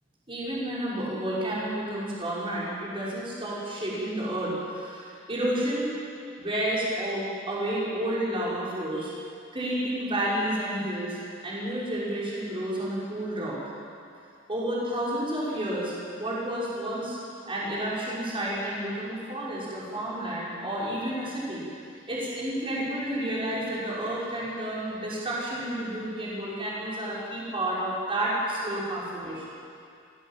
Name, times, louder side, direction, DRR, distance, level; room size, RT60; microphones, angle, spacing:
voice 1, 0.3-5.9 6.4-9.2 9.5-13.6 14.5-15.9 16.2-17.2 17.5-21.6 21.9-29.4, right 1 dB, 25° right, -7 dB, 5.9 m, -30 dB
26.5 x 17.0 x 7.6 m, 2.4 s
head